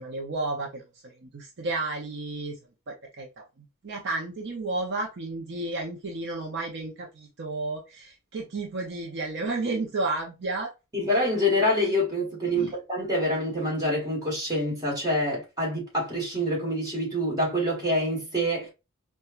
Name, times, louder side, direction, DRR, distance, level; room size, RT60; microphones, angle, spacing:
voice 1, 0.0-2.6 2.9-10.7 12.5-12.7, right 2 dB, 55° right, 0.6 m, -32 dB
voice 2, 10.9-18.7, equal, 20° right, 1.5 m, -26 dB
4.3 x 2.3 x 2.3 m
head